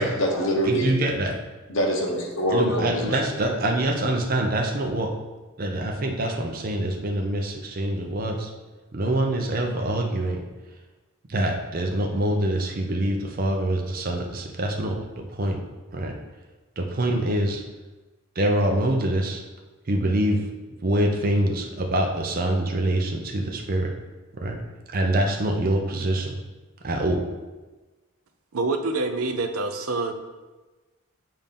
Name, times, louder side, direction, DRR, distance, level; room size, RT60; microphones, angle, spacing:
voice 1, 0.0-0.9 1.7-3.2, equal, 60° left, -1 dB, 1.1 m, -24 dB
voice 2, 0.6-1.4 2.5-5.1 5.6-8.5 8.9-10.4 11.3-15.6 15.9-16.1 16.8-17.6 18.4-19.4 19.9-20.4 20.8-23.9 24.3-24.6 24.9-26.4 26.8-27.3, right 1 dB, 40° right, 2 dB, 0.6 m, -25 dB
voice 3, 28.5-30.1, right 3 dB, 90° right, 7 dB, 0.6 m, -26 dB
7.3 x 2.7 x 5.3 m, 1.2 s
head